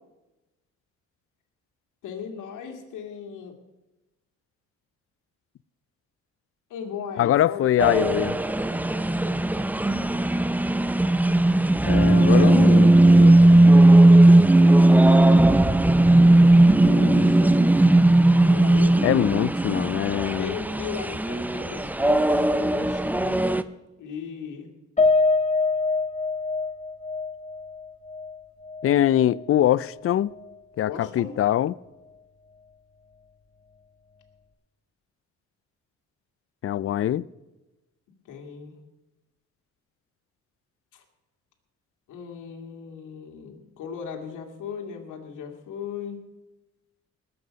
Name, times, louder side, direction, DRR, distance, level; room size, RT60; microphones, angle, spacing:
voice 1, 2.0-3.6 6.7-7.6 17.0-17.9 18.2-19.0 20.4-23.6 24.0-24.7 30.9-31.3 38.3-38.7 40.9-41.0 42.1-46.2, left 7 dB, 85° left, 2.2 m, -37 dB
voice 2, 7.2-8.4 11.8-13.4 16.8-17.4 19.0-20.5 28.8-30.3 30.8-31.8 36.6-37.2, left 12 dB, 50° left, 0.5 m, -23 dB
sound 1, 7.8-23.6, right 1 dB, 5° right, 0.5 m, -17 dB
Piano, 25.0-29.5 29.8-30.0 30.4-30.5, left 3 dB, 25° left, 1.8 m, -25 dB
20.0 x 7.8 x 5.2 m
cardioid pair, 90°, 30 cm